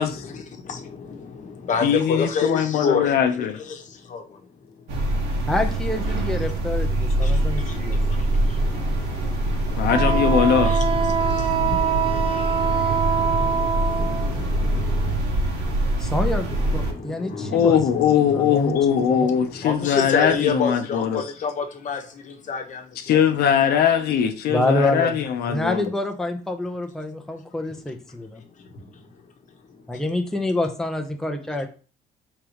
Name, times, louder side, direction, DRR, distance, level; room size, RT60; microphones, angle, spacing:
voice 1, 0.0-5.4 7.0-15.2 16.5-23.1 28.7-29.0 29.5-30.0, left 5 dB, 50° left, 1.1 m, -31 dB
voice 2, 1.8-3.5 9.8-10.7 17.5-21.2 23.1-25.9, left 8 dB, 70° left, 0.7 m, -21 dB
sound 1, 4.9-16.9, right 1 dB, 85° right, 1.7 m, -24 dB
voice 3, 5.5-8.0 16.0-19.3 24.5-28.3 29.9-31.7, left 1 dB, 5° left, 0.7 m, -27 dB
Wind instrument woodwind instrument, 9.9-14.3, right 7 dB, 35° right, 0.4 m, -24 dB
4.8 x 3.7 x 3.0 m
cardioid pair, 110°, 17 cm